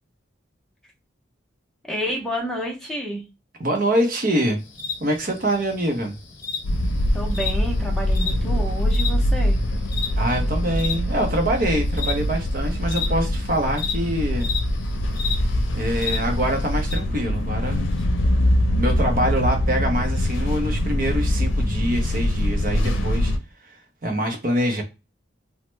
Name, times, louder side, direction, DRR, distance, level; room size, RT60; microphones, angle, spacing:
voice 1, 1.9-3.2 7.1-9.6 15.9-16.1, equal, 5° left, 0.6 m, -29 dB
voice 2, 3.6-4.6 5.0-6.2 10.2-14.5 15.7-17.9 18.8-23.3 24.0-24.8, right 1 dB, 45° right, 0.6 m, -24 dB
sound 1, 4.6-17.0, left 6 dB, 40° left, 0.9 m, -35 dB
sound 2, 6.6-23.4, left 1 dB, 75° left, 0.6 m, -23 dB
3.0 x 2.1 x 3.1 m
head